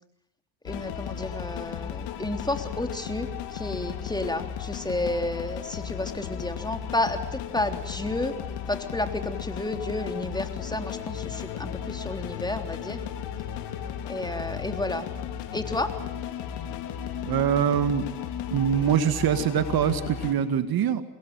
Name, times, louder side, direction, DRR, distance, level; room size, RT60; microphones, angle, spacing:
voice 1, 0.6-8.3 8.7-13.1 14.1-15.1 15.5-15.9, left 1 dB, 10° left, 6 dB, 3.5 m, -31 dB
sound 1, 0.7-20.3, left 9 dB, 65° left, 3.7 m, -35 dB
voice 2, 17.2-18.1 18.5-21.0, right 8 dB, 50° right, 10 dB, 2.2 m, -23 dB
26.5 x 21.5 x 9.1 m, 0.82 s
hypercardioid pair, 70°, 45 cm